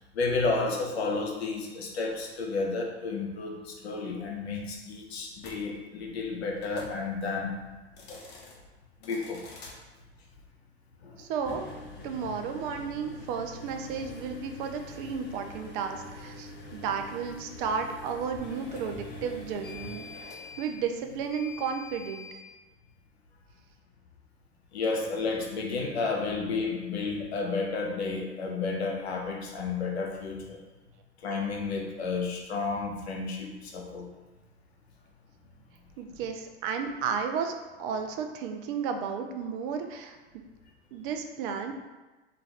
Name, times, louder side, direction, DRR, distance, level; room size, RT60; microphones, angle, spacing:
voice 1, 0.1-7.5 8.1-8.2 9.0-9.4 11.0-11.3 24.7-30.6 31.2-34.1, left 4 dB, 80° left, 1 dB, 0.6 m, -31 dB
sound 1, 5.4-5.6 6.6-6.9 7.8-8.5 9.0-9.7 11.3-22.4, left 2 dB, 30° left, 0.7 m, -44 dB
voice 2, 11.2-11.6 12.0-22.3 36.0-40.2 40.9-41.7, right 6 dB, 55° right, 5 dB, 0.4 m, -33 dB
2.4 x 2.3 x 3.2 m, 1.2 s
hypercardioid pair, 90°, 32 cm